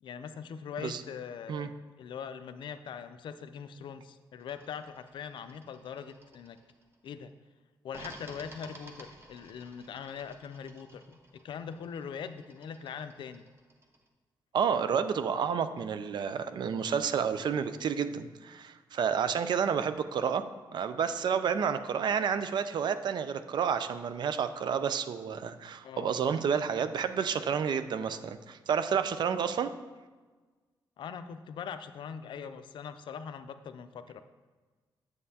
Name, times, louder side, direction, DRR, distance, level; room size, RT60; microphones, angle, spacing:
voice 1, 0.0-6.6 7.0-7.3 7.8-11.0 11.3-13.4 25.8-26.1 31.0-34.2, left 7 dB, 70° left, 10 dB, 0.4 m, -42 dB
sound 1, 4.4-7.1 7.9-14.1, right 1 dB, 30° right, 1.0 m, -54 dB
voice 2, 14.5-20.4 20.7-29.7, right 7 dB, 60° right, 11 dB, 0.4 m, -30 dB
7.8 x 7.5 x 2.8 m, 1.3 s
cardioid pair, 95°, 8 cm